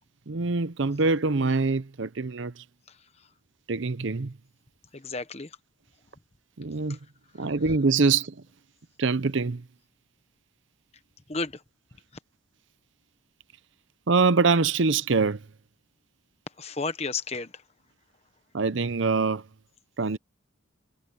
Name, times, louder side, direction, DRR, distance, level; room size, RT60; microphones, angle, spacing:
voice 1, 0.3-2.6 3.7-4.3 6.6-7.0 7.4-8.3 9.0-9.6 14.1-15.4 18.5-19.4 20.0-20.2, right 4 dB, 65° right, 0.7 m, -24 dB
voice 2, 2.9-3.3 4.9-5.6 6.9-7.0 7.3-7.5 11.3-11.6 16.6-17.6, left 3 dB, 30° left, 1.2 m, -33 dB
head